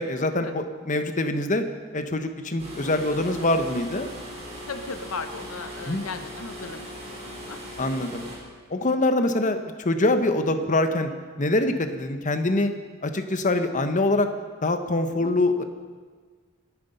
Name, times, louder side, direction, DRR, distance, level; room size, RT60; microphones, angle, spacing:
voice 1, 0.0-1.6 1.9-4.1 5.9-6.0 7.8-8.2 8.7-11.1 11.4-12.7 13.0-14.3 14.6-15.6, left 2 dB, 40° left, 7 dB, 1.1 m, -24 dB
sound 1, 2.6-8.4, equal, 30° right, 4.8 m, -39 dB
voice 2, 4.7-7.6 8.8-9.0 15.2-15.3, left 4 dB, 85° left, 8 dB, 0.9 m, -37 dB
26.5 x 9.6 x 5.5 m, 1.5 s
head